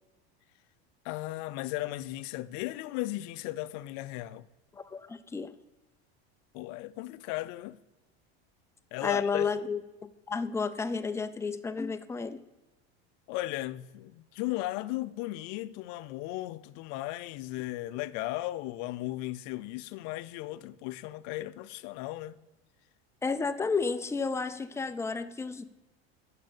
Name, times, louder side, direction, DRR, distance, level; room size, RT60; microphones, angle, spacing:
voice 1, 1.0-4.5 6.5-7.8 8.9-9.5 13.3-22.4, left 17 dB, 60° left, 0.6 m, -36 dB
voice 2, 4.7-5.5 9.0-9.8 10.3-12.4 23.2-25.6, left 5 dB, 10° left, 0.4 m, -31 dB
8.7 x 6.5 x 5.1 m
supercardioid pair, 115°, 32 cm